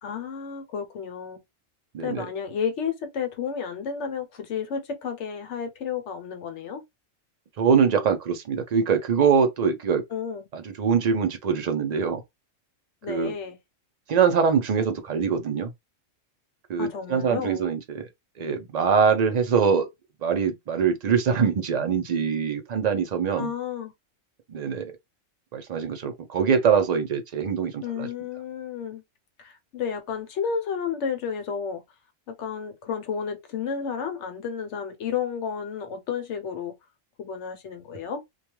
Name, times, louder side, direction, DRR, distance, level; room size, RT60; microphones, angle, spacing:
voice 1, 0.0-1.4 2.0-6.8 10.1-10.5 13.0-13.6 16.8-17.7 23.4-23.9 27.8-29.0 29.4-31.8 32.3-36.7 37.2-38.2, left 7 dB, 70° left, 1.0 m, -32 dB
voice 2, 1.9-2.3 7.6-10.0 10.5-12.2 13.1-13.3 14.1-15.7 16.7-18.1 18.4-19.9 20.2-23.5 24.5-24.9 25.5-28.1, right 6 dB, 55° right, 0.4 m, -23 dB
2.3 x 2.3 x 2.9 m
omnidirectional pair, 1.3 m